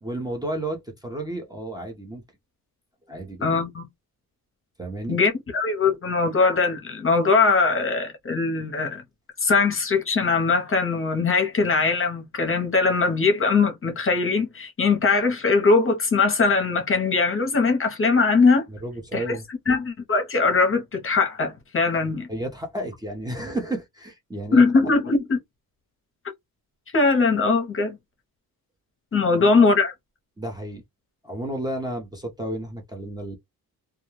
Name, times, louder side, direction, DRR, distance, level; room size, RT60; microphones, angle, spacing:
voice 1, 0.0-2.2 3.1-3.5 4.8-5.2 18.7-19.4 22.3-24.6 29.3-29.5 30.4-30.8 31.2-33.4, right 1 dB, 10° right, 0.6 m, -32 dB
voice 2, 3.4-3.8 5.1-9.0 9.4-18.6 19.1-19.4 19.7-22.3 24.5-25.4 26.9-28.0 29.1-29.9, left 4 dB, 35° left, 0.7 m, -21 dB
2.3 x 2.2 x 3.0 m
wide cardioid pair, 135°, 37 cm